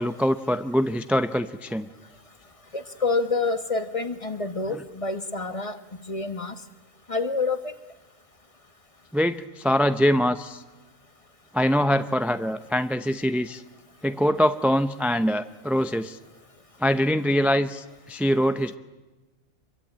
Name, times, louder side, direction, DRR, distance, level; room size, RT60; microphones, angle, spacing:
voice 1, 0.0-1.9 4.7-4.8 9.1-10.6 11.5-13.6 14.0-16.2 16.8-18.8, equal, ahead, 10 dB, 0.4 m, -23 dB
voice 2, 2.7-5.8 6.1-6.5 7.1-7.6, left 3 dB, 25° left, 10 dB, 1.2 m, -27 dB
24.5 x 23.0 x 8.9 m, 1.2 s
omnidirectional pair, 1.4 m